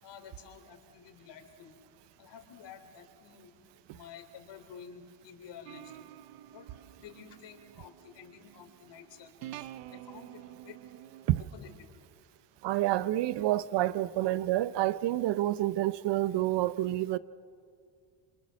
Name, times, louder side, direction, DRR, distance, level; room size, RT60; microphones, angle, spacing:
voice 1, 0.0-1.7 2.2-3.5 3.9-5.8 6.5-6.7 7.0-10.8 11.4-11.7 17.1-17.2, left 7 dB, 60° left, 3.5 m, -51 dB
sound 1, 5.7-11.4, right 13 dB, 90° right, 0.9 m, -49 dB
voice 2, 12.6-17.2, right 15 dB, 60° right, 0.9 m, -28 dB
28.5 x 24.5 x 6.4 m
supercardioid pair, 75°, 47 cm